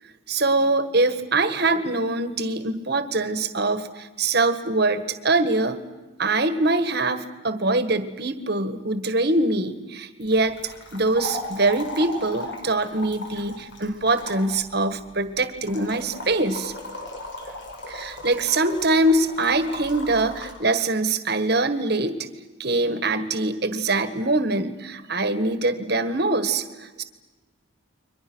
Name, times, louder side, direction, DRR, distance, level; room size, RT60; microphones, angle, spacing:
voice 1, 0.3-5.8 6.2-16.7 17.9-22.2 22.6-27.0, right 2 dB, 50° right, 10 dB, 1.7 m, -23 dB
sound 1, 10.2-20.5, left 1 dB, 55° left, 5.1 m, -37 dB
30.0 x 23.5 x 6.3 m, 1.2 s
head